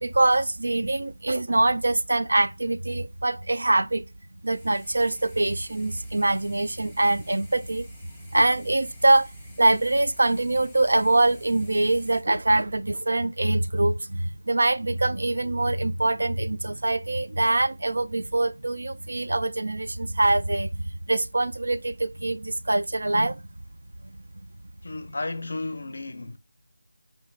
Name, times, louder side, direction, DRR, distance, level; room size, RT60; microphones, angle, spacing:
voice 1, 0.0-4.0 4.4-7.9 8.3-23.4, right 2 dB, 80° right, 0.3 m, -24 dB
sound 1, 4.5-12.2, left 1 dB, ahead, 0.5 m, -51 dB
voice 2, 24.8-26.4, left 2 dB, 60° left, 0.4 m, -33 dB
4.4 x 2.4 x 3.0 m
figure-of-eight pair, 175°, 0 cm